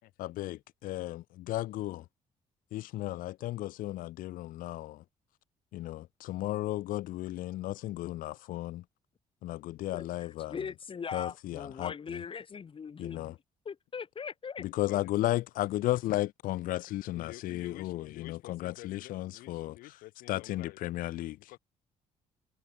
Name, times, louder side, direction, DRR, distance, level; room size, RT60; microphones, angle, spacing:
voice 1, 0.2-2.0 2.7-5.0 5.7-8.8 9.4-10.5 11.1-12.2 13.0-13.3 14.6-19.8 20.3-21.6, left 16 dB, 70° left, 0.4 m, -34 dB
voice 2, 9.9-13.4 13.6-14.6 17.7-17.8, left 6 dB, 35° left, 1.2 m, -40 dB
voice 3, 17.1-20.8 21.4-21.6, left 18 dB, 90° left, 3.7 m, -50 dB
cardioid pair, 80°, 15 cm